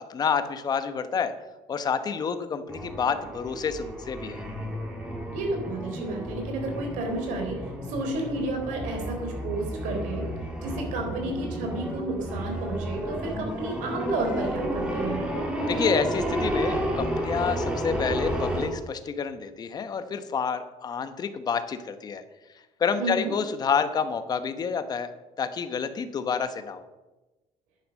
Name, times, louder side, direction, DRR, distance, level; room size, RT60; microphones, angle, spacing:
voice 1, 0.0-1.3 1.7-4.4 15.7-22.2 22.8-25.1 25.4-26.9, left 6 dB, 30° left, 10 dB, 1.0 m, -28 dB
sound 1, 2.7-18.7, equal, 10° right, 2.5 m, -31 dB
voice 2, 5.3-7.6 7.9-10.3 10.6-15.2 23.0-23.3, right 2 dB, 85° right, 3 dB, 3.9 m, -31 dB
10.5 x 9.8 x 6.5 m, 1.1 s
cardioid pair, 155°, 13 cm